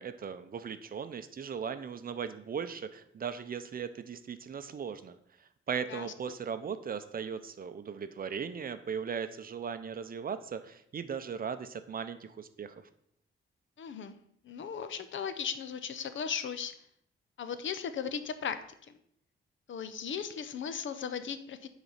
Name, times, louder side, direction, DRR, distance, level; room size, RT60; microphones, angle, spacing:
voice 1, 0.0-5.2 5.7-12.7, right 6 dB, 45° right, 10 dB, 0.6 m, -38 dB
voice 2, 13.8-14.2 14.4-16.7 17.4-18.9 19.7-21.7, left 7 dB, 65° left, 11 dB, 0.7 m, -37 dB
9.3 x 4.1 x 5.6 m, 0.70 s
wide cardioid pair, 130°, 21 cm